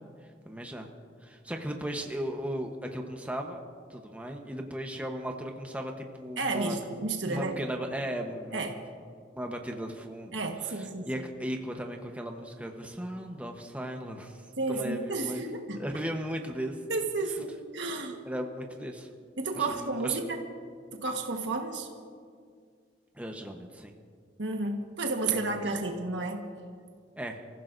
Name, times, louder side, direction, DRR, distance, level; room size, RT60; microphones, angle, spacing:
voice 1, 0.4-0.9 1.2-3.6 3.9-6.8 7.3-8.8 9.3-10.4 10.6-15.4 15.8-16.8 18.3-19.1 19.5-20.2 23.2-23.9 25.3-25.5 27.2-27.4, equal, 10° right, 2 dB, 1.0 m, -36 dB
voice 2, 6.4-7.5 8.5-8.7 10.3-11.1 14.6-15.8 16.9-18.2 19.4-20.4 20.9-21.9 24.4-26.4, right 3 dB, 80° right, 3 dB, 1.4 m, -31 dB
29.5 x 15.5 x 2.6 m, 2.1 s
head